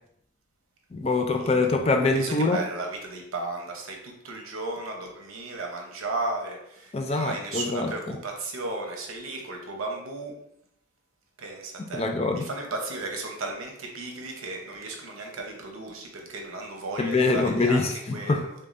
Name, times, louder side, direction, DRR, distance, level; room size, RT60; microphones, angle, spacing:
voice 1, 0.9-2.6 6.9-8.2 11.9-12.5 17.0-18.4, left 3 dB, 30° left, 4 dB, 0.4 m, -24 dB
voice 2, 2.1-10.3 11.4-12.1 12.3-18.5, right 2 dB, 85° right, 2 dB, 0.8 m, -35 dB
6.4 x 2.3 x 2.6 m, 0.76 s
head